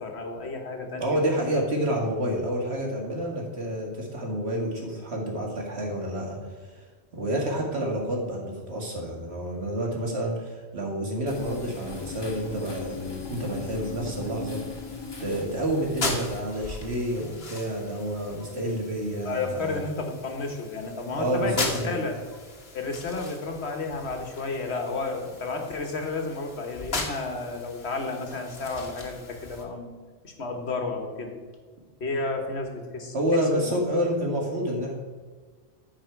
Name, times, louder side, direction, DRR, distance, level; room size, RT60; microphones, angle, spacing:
voice 1, 0.0-1.2 1.5-1.6 19.2-21.6 21.8-22.1 22.7-29.9 30.2-31.4 32.0-33.1 33.5-33.8, left 3 dB, 85° left, 3 dB, 1.6 m, -32 dB
voice 2, 1.0-6.4 7.1-14.6 15.2-19.8 21.1-22.0 33.1-35.0, equal, 80° right, -1 dB, 2.2 m, -29 dB
sound 1, 11.3-29.6, left 3 dB, 65° left, 1.5 m, -39 dB
sound 2, 11.3-16.4, left 4 dB, 25° left, 1.1 m, -38 dB
14.5 x 4.9 x 4.6 m, 1.4 s
omnidirectional pair, 1.1 m